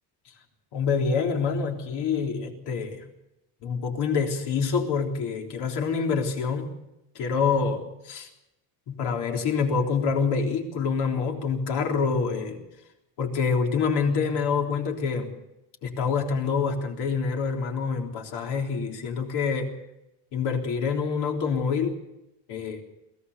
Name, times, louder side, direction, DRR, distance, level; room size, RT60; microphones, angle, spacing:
voice 1, 0.7-3.0 3.6-6.8 7.2-8.3 8.9-12.6 13.2-15.3 15.8-19.7 20.3-22.0 22.5-22.8, left 5 dB, 65° left, 2 dB, 3.7 m, -26 dB
23.0 x 16.5 x 6.8 m, 0.90 s
cardioid pair, 155°, 43 cm